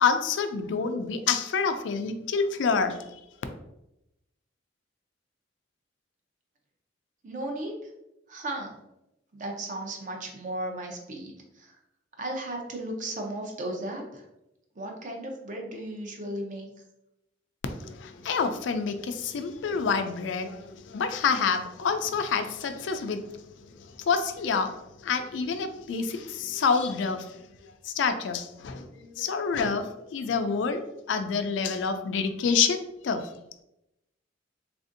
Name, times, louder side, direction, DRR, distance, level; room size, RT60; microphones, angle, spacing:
voice 1, 0.0-3.0 17.8-23.2 24.1-24.7 25.0-27.2 27.9-28.9 29.2-29.9 30.1-30.8 31.1-32.8 33.0-33.2, left 5 dB, 75° left, 8 dB, 0.3 m, -27 dB
voice 2, 7.2-7.7 8.3-8.7 9.3-11.3 11.6-11.7 12.2-14.2 14.8-16.7, right 1 dB, 45° right, 1 dB, 0.6 m, -35 dB
3.3 x 2.5 x 2.5 m, 0.87 s
head